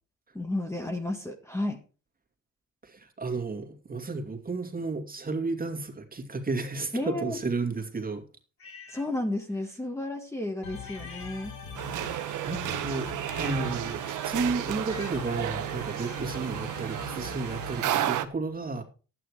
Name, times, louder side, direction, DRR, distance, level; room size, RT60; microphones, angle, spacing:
voice 1, 0.3-1.8 6.9-7.4 8.9-11.5, left 1 dB, 10° left, 1.7 m, -32 dB
voice 2, 2.8-8.2 11.9-13.1 13.4-18.8, right 3 dB, 30° right, 2.5 m, -33 dB
sound 1, 8.6-9.1 10.8-11.9 13.2-15.4, left 5 dB, 45° left, 2.5 m, -49 dB
sound 2, 10.6-18.0, left 5 dB, 65° left, 3.8 m, -42 dB
sound 3, 11.7-18.2, right 12 dB, 80° right, 1.1 m, -32 dB
11.5 x 9.1 x 4.8 m
cardioid pair, 90°, 30 cm